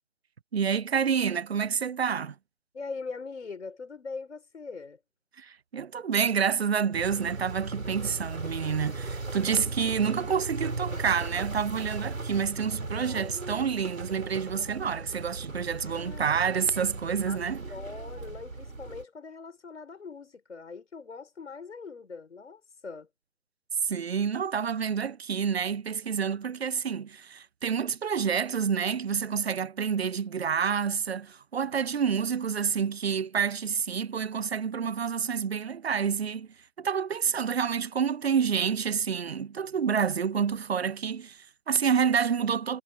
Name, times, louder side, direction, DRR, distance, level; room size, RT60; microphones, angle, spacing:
voice 1, 0.5-2.3 5.4-17.6 23.8-36.5 36.8-42.8, right 7 dB, 55° right, 0.6 m, -28 dB
voice 2, 2.7-5.0 12.8-13.4 15.7-16.5 17.2-23.1, left 4 dB, 65° left, 4.9 m, -42 dB
sound 1, 6.9-19.0, right 3 dB, 85° right, 5.1 m, -37 dB
figure-of-eight pair, 160°, 38 cm